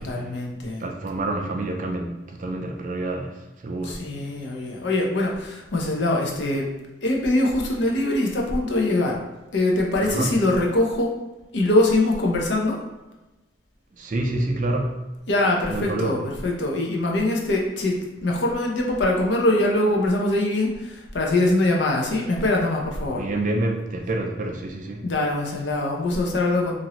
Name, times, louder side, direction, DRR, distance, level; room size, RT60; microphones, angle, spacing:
voice 1, 0.0-0.9 3.8-6.7 7.0-9.2 9.5-11.1 11.5-12.8 15.3-23.2 25.0-26.8, left 2 dB, 65° left, 0 dB, 0.6 m, -23 dB
voice 2, 0.8-4.0 10.0-10.3 14.0-15.0 15.7-16.1 23.2-25.0, right 2 dB, 40° right, 2 dB, 0.4 m, -28 dB
2.9 x 2.5 x 2.9 m, 1.1 s
head